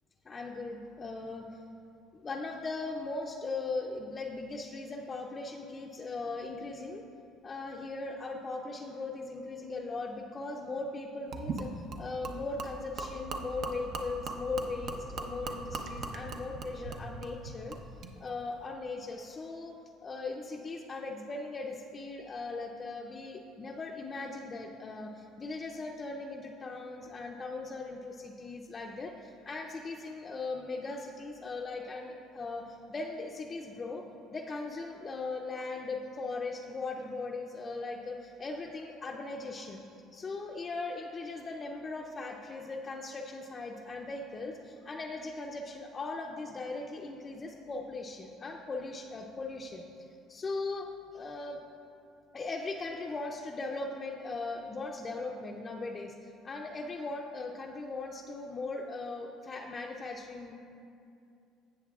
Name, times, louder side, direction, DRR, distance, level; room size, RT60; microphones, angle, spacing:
voice 1, 0.2-1.6 2.1-7.1 7.4-17.7 18.2-34.0 34.3-39.8 40.1-49.8 50.3-51.6 52.3-60.5, left 3 dB, 30° left, 0 dB, 0.5 m, -39 dB
Gurgling / Liquid, 11.3-18.1, right 3 dB, 55° right, 0.6 m, -40 dB
15.5 x 6.6 x 2.3 m, 2.6 s
cardioid pair, 110°, 0 cm